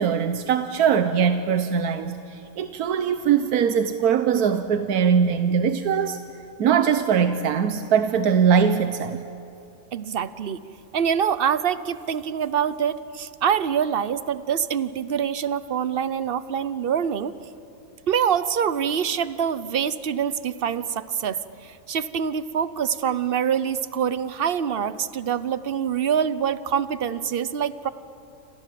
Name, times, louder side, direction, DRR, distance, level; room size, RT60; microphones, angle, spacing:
voice 1, 0.0-6.2 6.6-9.2, right 7 dB, 90° right, 9 dB, 1.4 m, -21 dB
voice 2, 9.9-10.6 10.9-17.3 18.1-27.9, right 8 dB, 45° right, 15 dB, 0.9 m, -25 dB
29.0 x 27.0 x 7.7 m, 2.7 s
omnidirectional pair, 1.5 m